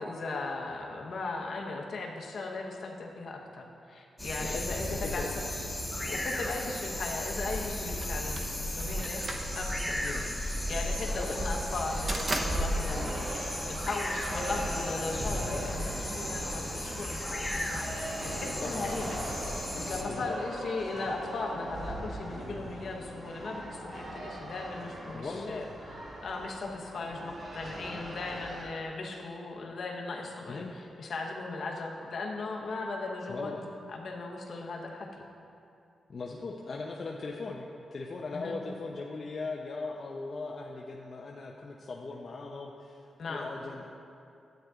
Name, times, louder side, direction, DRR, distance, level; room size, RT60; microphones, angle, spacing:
voice 1, 0.0-5.2 6.1-9.2 9.5-10.1 10.5-13.4 13.7-19.2 19.5-25.7 26.2-33.6 33.9-35.1 38.3-38.5 43.2-43.5, left 3 dB, 65° left, 0 dB, 1.1 m, -37 dB
sound 1, 4.2-20.0, left 1 dB, 10° left, 1.4 m, -35 dB
voice 2, 4.4-5.4 10.0-10.3 11.1-11.5 18.6-18.8 20.0-20.3 25.1-25.8 30.5-30.7 33.3-33.6 36.1-43.9, left 3 dB, 50° left, -1 dB, 0.6 m, -39 dB
sound 2, 8.0-14.2, right 2 dB, 40° right, 0.9 m, -38 dB
sound 3, 10.8-28.6, right 1 dB, 65° right, 2.1 m, -40 dB
11.5 x 9.1 x 2.5 m, 2.6 s
cardioid pair, 85°, 0 cm